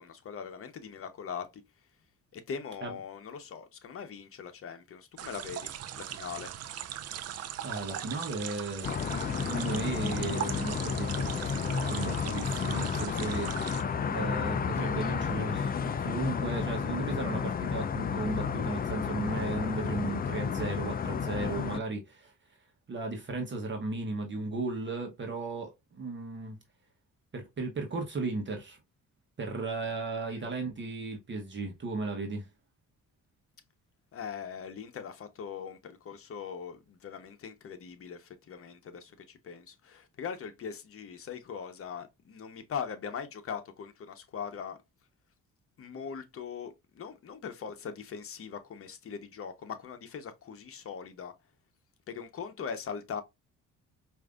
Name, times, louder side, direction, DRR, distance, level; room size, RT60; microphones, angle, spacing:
voice 1, 0.0-1.6 2.3-5.7 6.0-6.5 30.3-30.6 34.1-44.8 45.8-51.3 52.1-53.2, left 6 dB, 50° left, 0.9 m, -41 dB
sound 1, 5.2-13.8, right 10 dB, 55° right, 0.5 m, -40 dB
voice 2, 7.6-13.6 14.1-22.3 22.9-26.6 27.3-28.8 29.4-32.5, right 3 dB, 40° right, 1.0 m, -35 dB
sound 2, 8.8-21.8, left 6 dB, 30° left, 0.4 m, -32 dB
4.8 x 2.6 x 2.4 m
cardioid pair, 90°, 30 cm